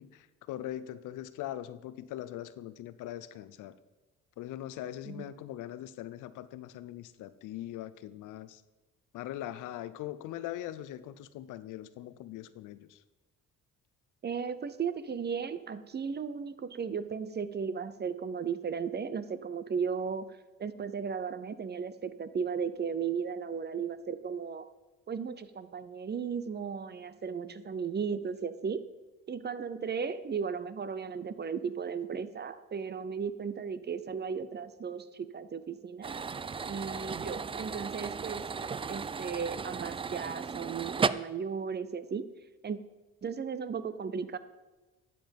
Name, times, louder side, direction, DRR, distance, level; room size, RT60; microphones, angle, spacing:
voice 1, 0.0-3.8 4.4-8.6 9.1-13.0, left 12 dB, 90° left, 14 dB, 0.7 m, -41 dB
voice 2, 14.2-24.7 25.1-28.8 29.3-36.1 36.7-38.5 38.9-42.2 42.6-42.8 43.2-44.4, right 6 dB, 35° right, 14 dB, 0.7 m, -35 dB
sound 1, 36.0-41.1, right 5 dB, 20° right, 0.3 m, -35 dB
12.0 x 7.6 x 5.3 m, 1.2 s
cardioid pair, 90°, 30 cm